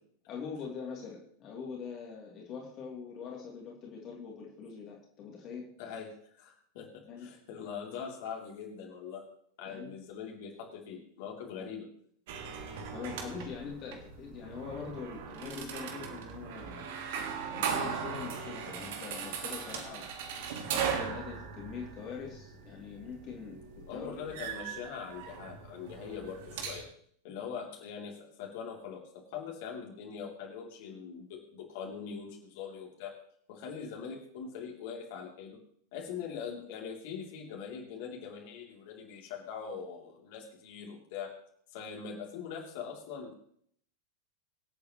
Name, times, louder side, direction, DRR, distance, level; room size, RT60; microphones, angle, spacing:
voice 1, 0.3-5.7 7.1-7.3 9.6-9.9 12.7-17.0 17.4-20.1 20.4-24.2, left 6 dB, 35° left, -2 dB, 2.9 m, -43 dB
voice 2, 5.8-9.2 9.6-11.9 23.9-26.9 27.2-33.1 33.5-35.6 35.9-41.3 41.7-43.4, left 6 dB, 50° left, -1 dB, 3.1 m, -42 dB
sound 1, 12.3-26.8, right 7 dB, 50° right, 1.8 m, -39 dB
24.5 x 8.5 x 3.1 m, 0.64 s
figure-of-eight pair, 90°, 0 cm